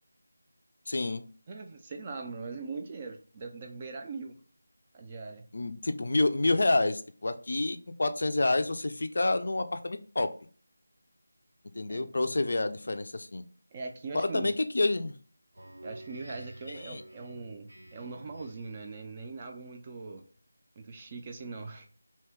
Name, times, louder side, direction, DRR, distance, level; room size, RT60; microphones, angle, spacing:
voice 1, 0.9-1.2 5.5-10.3 11.8-13.4 14.1-15.1 16.7-17.0, left 2 dB, 55° left, 9 dB, 0.3 m, -28 dB
voice 2, 1.5-4.4 4.9-5.5 11.9-12.1 13.7-14.5 15.8-20.3 20.8-21.9, right 4 dB, 20° right, 4 dB, 0.3 m, -41 dB
Speech synthesizer, 15.5-18.9, right 1 dB, 80° right, 0.6 m, -50 dB
2.7 x 2.2 x 3.4 m, 0.40 s
figure-of-eight pair, 170°, 0 cm